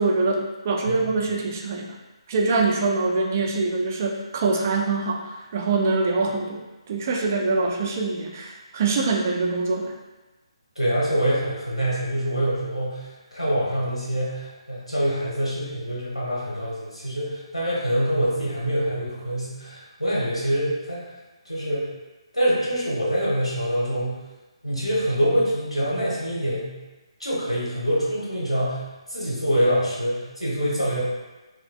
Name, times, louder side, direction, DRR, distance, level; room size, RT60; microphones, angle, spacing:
voice 1, 0.0-2.0 2.3-9.9, right 3 dB, 30° right, 1 dB, 0.3 m, -24 dB
voice 2, 10.8-13.1 13.3-21.0 21.5-21.9 22.3-24.2 24.6-26.8 27.2-28.8 29.1-31.0, equal, 90° left, -6 dB, 1.2 m, -25 dB
3.1 x 2.8 x 2.4 m, 1.1 s
figure-of-eight pair, 145°, 3 cm